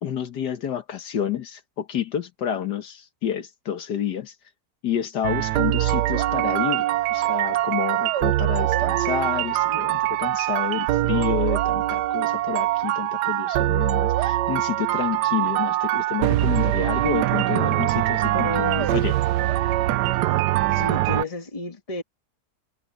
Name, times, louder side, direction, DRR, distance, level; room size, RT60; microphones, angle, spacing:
voice 1, 0.0-4.3 4.8-6.8 7.1-18.5 18.8-19.1, left 9 dB, 75° left, 1.7 m, -29 dB
sound 1, 5.2-21.2, right 15 dB, 75° right, 1.2 m, -23 dB
voice 2, 18.3-18.9 20.7-22.0, left 3 dB, 20° left, 1.5 m, -31 dB
omnidirectional pair, 1.9 m